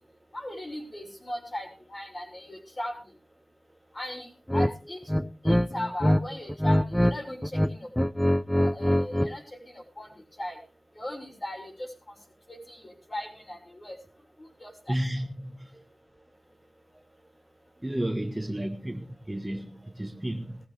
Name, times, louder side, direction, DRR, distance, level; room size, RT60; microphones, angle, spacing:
voice 1, 0.3-3.0 3.9-5.0 5.4-7.9 8.5-10.6 10.9-12.1 12.5-14.0 14.4-15.0, left 1 dB, 35° left, 2 dB, 6.2 m, -38 dB
sound 1, 4.5-4.7 5.1-6.2 6.5-7.1 7.4-9.3, equal, 5° left, 0.6 m, -23 dB
voice 2, 14.9-15.5 17.8-20.6, right 1 dB, 20° right, 6 dB, 1.4 m, -32 dB
18.5 x 14.5 x 3.3 m, 0.33 s
cardioid pair, 50°, 0 cm